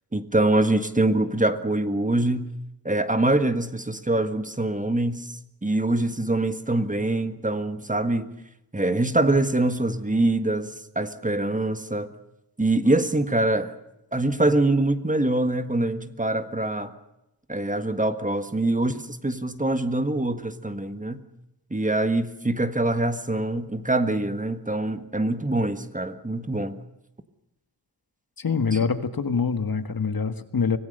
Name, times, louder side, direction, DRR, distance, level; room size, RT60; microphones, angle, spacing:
voice 1, 0.1-2.5 2.8-5.3 5.6-8.3 8.7-12.1 12.6-13.7 14.1-16.9 17.5-21.2 21.7-26.8, right 2 dB, 20° right, 9 dB, 1.6 m, -24 dB
voice 2, 28.4-30.8, left 5 dB, 60° left, 10 dB, 1.7 m, -25 dB
25.0 x 18.5 x 6.8 m, 0.91 s
wide cardioid pair, 85°, 40 cm